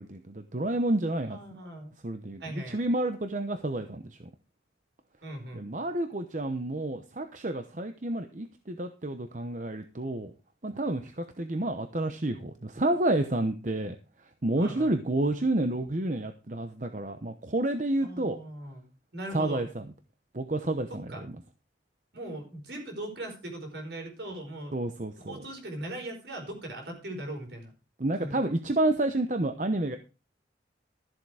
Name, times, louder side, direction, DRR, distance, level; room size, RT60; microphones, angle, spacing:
voice 1, 0.0-1.4 2.0-4.3 5.5-10.3 10.6-14.0 14.4-18.4 19.3-19.9 20.3-21.3 24.7-25.4 28.0-30.0, right 1 dB, 40° right, 7 dB, 0.9 m, -30 dB
voice 2, 1.3-1.9 2.4-2.8 5.2-5.8 14.6-14.9 18.0-18.9 19.1-19.6 20.9-21.2 22.1-24.8 25.2-27.7 28.2-28.4, right 1 dB, 65° right, 4 dB, 4.7 m, -39 dB
13.5 x 7.7 x 4.8 m, 0.32 s
head